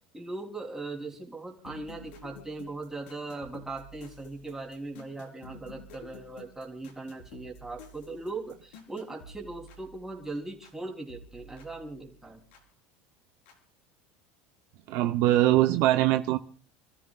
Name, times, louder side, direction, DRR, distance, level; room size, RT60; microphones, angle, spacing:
voice 1, 0.1-12.4, right 2 dB, 10° right, 0 dB, 3.5 m, -39 dB
sound 1, 1.6-10.8 11.1-12.7 13.5-13.6, left 1 dB, 85° left, 4.6 m, -51 dB
voice 2, 14.9-16.4, right 14 dB, 65° right, 7 dB, 0.9 m, -22 dB
29.5 x 13.5 x 2.5 m, 0.42 s
supercardioid pair, 130°, 6 cm